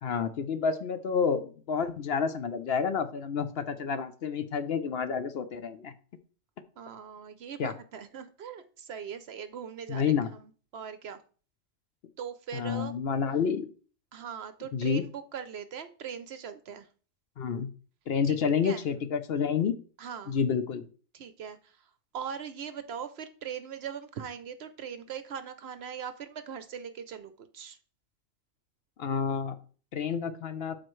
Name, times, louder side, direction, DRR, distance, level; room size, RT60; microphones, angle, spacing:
voice 1, 0.0-5.9 7.6-7.7 9.9-10.3 12.5-13.7 14.7-15.0 17.4-17.7 18.1-19.7 20.3-20.8 29.0-29.6 29.9-30.8, left 6 dB, 60° left, 10 dB, 0.8 m, -29 dB
voice 2, 6.8-11.2 12.2-12.9 14.1-16.9 18.3-18.4 18.6-18.9 20.0-20.4 21.1-21.8 22.1-27.8, right 7 dB, 60° right, 11 dB, 0.8 m, -40 dB
12.0 x 4.3 x 3.1 m, 0.40 s
omnidirectional pair, 1.3 m